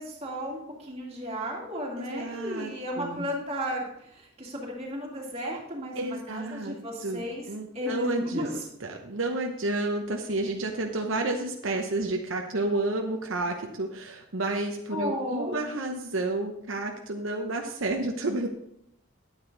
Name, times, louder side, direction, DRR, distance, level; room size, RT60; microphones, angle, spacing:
voice 1, 0.0-7.4 7.7-8.7 14.9-15.7, equal, 30° right, -2 dB, 2.3 m, -34 dB
voice 2, 2.0-3.2 6.0-6.7 7.0-8.5 8.8-18.5, right 2 dB, 75° right, 3 dB, 0.9 m, -31 dB
9.9 x 9.0 x 3.9 m, 0.76 s
head